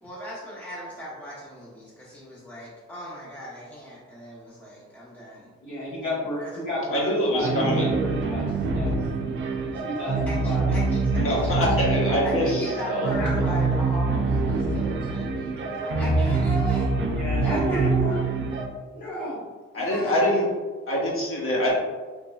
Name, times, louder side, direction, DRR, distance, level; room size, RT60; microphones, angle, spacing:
voice 1, 0.0-5.5 6.4-6.6 9.0-9.1 10.3-11.6 12.2-16.9 17.4-17.9 19.7-20.3, equal, 5° left, -7 dB, 0.7 m, -37 dB
voice 2, 5.6-9.0 9.6-10.7 13.2-13.4 17.1-18.5 18.9-19.4, left 1 dB, 85° left, -8 dB, 1.4 m, -32 dB
voice 3, 6.9-7.9 8.8-8.9 11.1-13.1 19.7-20.5 20.9-21.7, left 1 dB, 45° left, -4 dB, 1.0 m, -24 dB
sound 1, 7.4-18.7, right 3 dB, 40° right, 0.4 m, -25 dB
3.0 x 2.6 x 2.3 m, 1.4 s
cardioid pair, 90°, 30 cm